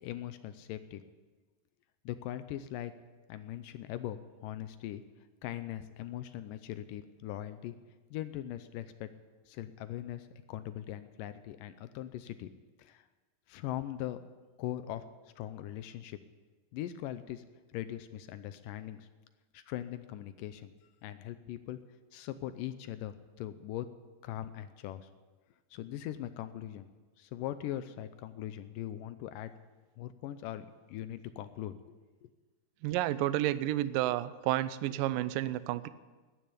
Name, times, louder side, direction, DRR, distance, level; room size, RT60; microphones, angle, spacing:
voice 1, 0.0-1.0 2.1-2.9 3.3-5.0 5.4-7.7 8.1-9.1 9.5-12.5 12.8-13.0 13.5-14.2 14.6-15.0 15.4-16.2 16.7-17.4 17.7-19.1 19.5-20.7 21.0-21.8 22.1-23.9 24.2-25.1 25.7-26.9 27.2-29.5 30.0-31.8, left 12 dB, 80° left, 12 dB, 2.1 m, -40 dB
voice 2, 32.8-35.9, right 14 dB, 80° right, 15 dB, 2.1 m, -31 dB
12.5 x 10.0 x 9.9 m, 1.3 s
omnidirectional pair, 4.3 m